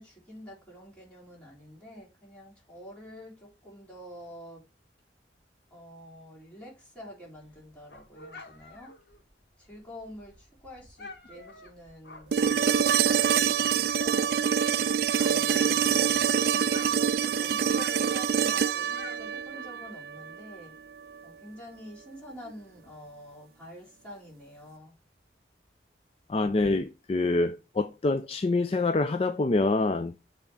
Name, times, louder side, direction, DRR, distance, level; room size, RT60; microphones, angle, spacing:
voice 1, 0.0-4.6 5.7-8.9 9.6-14.3 15.1-20.8 21.2-24.9, equal, 5° left, 3.4 m, -47 dB
Dog, 7.4-13.6 14.0-16.3 16.6-20.0, left 3 dB, 65° left, 1.5 m, -49 dB
sound 1, 12.3-20.4 22.5-22.6, right 8 dB, 55° right, 0.3 m, -25 dB
voice 2, 26.3-30.2, left 2 dB, 35° left, 0.4 m, -26 dB
7.2 x 3.6 x 5.4 m
head